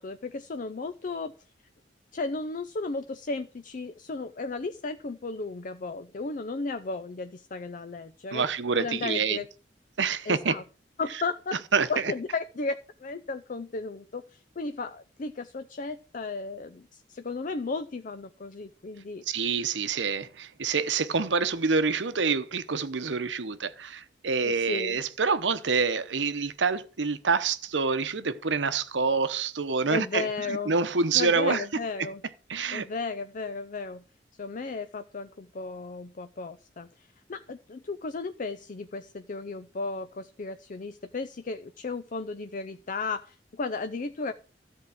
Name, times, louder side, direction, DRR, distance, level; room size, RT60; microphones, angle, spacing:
voice 1, 0.0-1.3 2.1-8.5 8.8-9.5 10.3-10.6 11.0-11.6 11.9-19.2 24.4-25.0 29.9-30.8 31.1-32.2 32.7-34.0 34.4-44.3, left 3 dB, 50° left, 0.6 m, -34 dB
voice 2, 8.3-9.4 10.0-10.6 11.7-12.1 19.3-31.8 32.5-32.9, right 5 dB, 85° right, 0.9 m, -27 dB
13.0 x 4.6 x 8.4 m
head